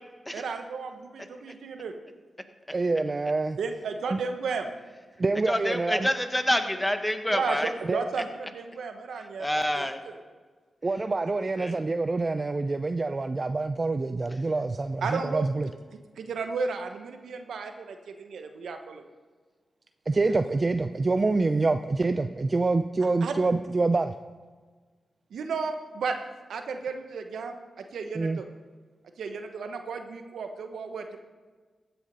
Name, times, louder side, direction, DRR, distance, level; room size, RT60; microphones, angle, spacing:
voice 1, 0.3-1.9 3.6-4.7 7.3-9.8 11.2-11.3 15.0-15.5 15.9-19.0 20.2-20.3 23.2-23.4 25.3-26.2 26.5-28.5 29.2-31.2, right 5 dB, 85° right, 6 dB, 1.0 m, -34 dB
voice 2, 2.7-3.6 4.1-4.2 5.2-6.1 7.9-8.0 10.8-15.7 20.1-24.1 28.2-28.4, right 3 dB, 40° right, 9 dB, 0.5 m, -26 dB
voice 3, 5.5-7.7 9.4-10.0 11.6-11.8, left 1 dB, 15° left, 7 dB, 1.4 m, -27 dB
15.5 x 7.0 x 5.5 m, 1.4 s
supercardioid pair, 45°, 0 cm